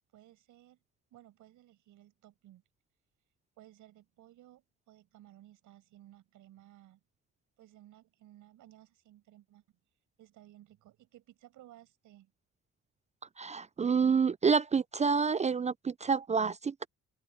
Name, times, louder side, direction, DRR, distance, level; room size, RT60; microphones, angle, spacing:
voice 1, 0.1-0.8 1.1-2.6 3.6-7.0 7.6-9.6 10.2-12.3, right 13 dB, 85° right, 5.8 m, -58 dB
voice 2, 13.4-16.9, right 5 dB, 25° right, 0.3 m, -28 dB
open air
cardioid pair, 90°, 30 cm